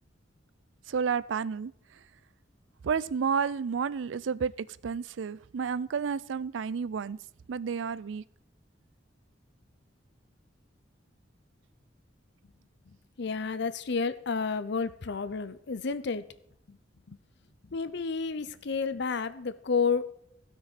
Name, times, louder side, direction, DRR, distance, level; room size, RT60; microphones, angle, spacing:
voice 1, 0.9-1.7 2.8-7.2 7.5-8.2, right 6 dB, 75° right, 0.4 m, -31 dB
voice 2, 13.2-16.3 16.7-16.8 17.1-17.2 17.7-20.1, left 5 dB, 65° left, 0.7 m, -31 dB
16.0 x 6.3 x 4.1 m
head